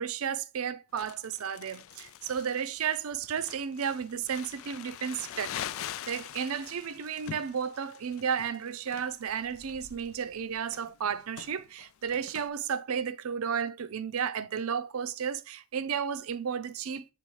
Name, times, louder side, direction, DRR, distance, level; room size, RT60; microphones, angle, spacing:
voice 1, 0.0-17.1, right 7 dB, 80° right, 0.5 m, -33 dB
Crumpling crinkling, 1.0-12.5, left 10 dB, 75° left, 0.3 m, -44 dB
8.3 x 3.7 x 3.1 m
head